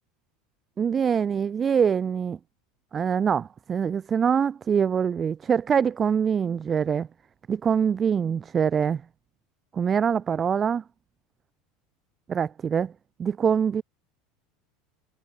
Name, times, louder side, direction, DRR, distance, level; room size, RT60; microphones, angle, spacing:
voice 1, 0.8-2.4 2.9-7.1 7.5-9.0 9.7-10.8 12.3-12.9 13.2-13.8, right 7 dB, 30° right, 0.5 m, -24 dB
figure-of-eight pair, 75°, 0 cm